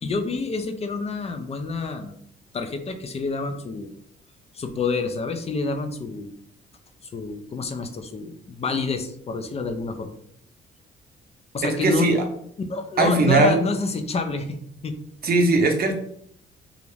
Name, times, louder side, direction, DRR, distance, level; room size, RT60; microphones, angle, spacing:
voice 1, 0.0-2.1 2.5-3.9 4.5-6.3 7.1-10.1 11.5-12.1 12.7-14.6 14.8-15.0, left 3 dB, 30° left, 7 dB, 0.4 m, -28 dB
voice 2, 11.6-12.2 13.0-13.6 15.2-15.9, right 2 dB, 50° right, 3 dB, 0.6 m, -19 dB
2.4 x 2.0 x 3.1 m, 0.66 s
cardioid pair, 90°, 20 cm